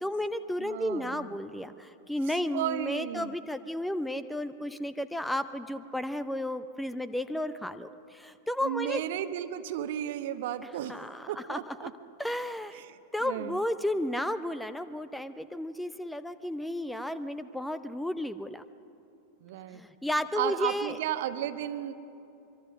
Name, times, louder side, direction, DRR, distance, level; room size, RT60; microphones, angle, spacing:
voice 1, 0.0-9.0 10.9-11.9 12.2-12.8 13.1-18.6 19.7-21.0, left 1 dB, 5° left, 13 dB, 0.6 m, -33 dB
voice 2, 0.6-1.3 2.5-3.3 8.6-11.0 11.3-11.9 12.7-13.6 19.4-19.8 20.3-21.9, right 11 dB, 55° right, 11 dB, 1.1 m, -34 dB
24.0 x 24.0 x 6.2 m, 2.7 s
figure-of-eight pair, 90°, 0 cm